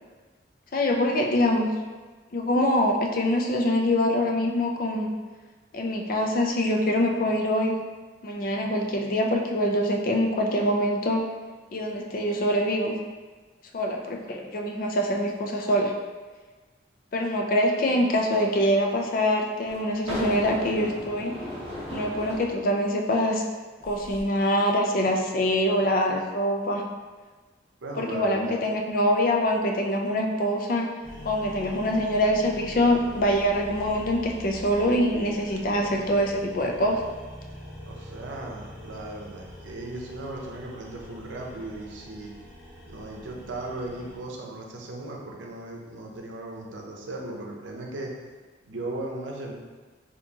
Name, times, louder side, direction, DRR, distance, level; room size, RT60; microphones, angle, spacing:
voice 1, 0.7-1.7 2.3-5.1 5.7-7.8 8.2-11.2 11.7-12.9 13.7-15.9 17.1-21.4 21.9-23.4 23.8-26.8 28.0-30.9 31.2-37.0, equal, 50° left, 2 dB, 0.4 m, -24 dB
sound 1, 19.7-22.5 23.8-24.2, left 1 dB, 35° right, 1.2 m, -36 dB
voice 2, 27.8-28.6 37.8-42.3 42.8-48.1 48.6-49.5, right 2 dB, 90° right, -1 dB, 0.7 m, -37 dB
sound 2, 31.0-44.2, equal, 5° right, 1.5 m, -43 dB
4.3 x 2.8 x 2.8 m, 1.4 s
head